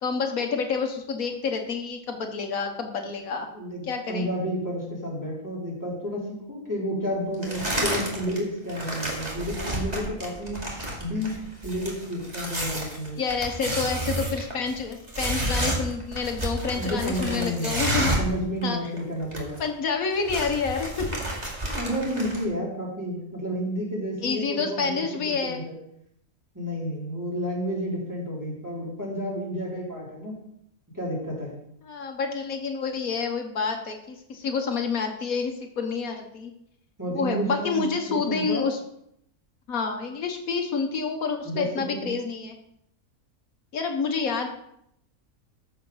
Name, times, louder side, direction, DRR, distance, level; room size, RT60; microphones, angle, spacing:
voice 1, 0.0-3.5 3.8-4.3 13.2-18.1 18.6-18.8 19.6-21.1 24.2-25.6 31.8-36.5 37.1-38.8 39.7-42.6 43.7-44.5, left 5 dB, 80° left, 4 dB, 1.6 m, -28 dB
voice 2, 3.5-10.6 11.0-11.4 11.6-13.2 16.7-19.6 21.7-25.7 26.5-30.4 30.9-31.5 37.0-38.6 41.4-42.0, equal, 10° right, -6 dB, 4.2 m, -31 dB
sound 1, 7.4-8.4 8.7-18.4 18.6-18.7 19.0-19.7 20.0-22.4, right 1 dB, 30° right, 2.5 m, -30 dB
14.0 x 5.1 x 5.7 m, 0.74 s
omnidirectional pair, 1.5 m